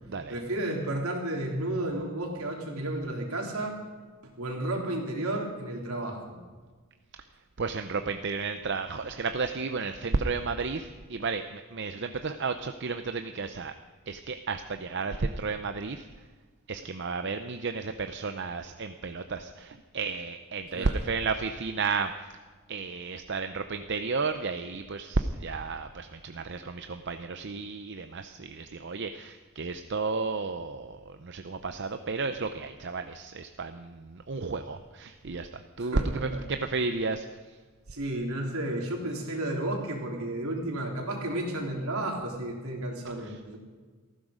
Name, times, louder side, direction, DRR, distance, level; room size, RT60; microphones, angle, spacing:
voice 1, 0.3-3.8 4.4-6.4 20.7-21.0 35.8-36.4 37.9-43.6, right 1 dB, 75° right, 0 dB, 3.5 m, -32 dB
voice 2, 7.6-13.7 14.1-16.1 16.7-22.1 22.7-35.5 35.8-37.2, right 4 dB, 50° right, 8 dB, 0.7 m, -32 dB
18.5 x 15.0 x 5.1 m, 1.4 s
head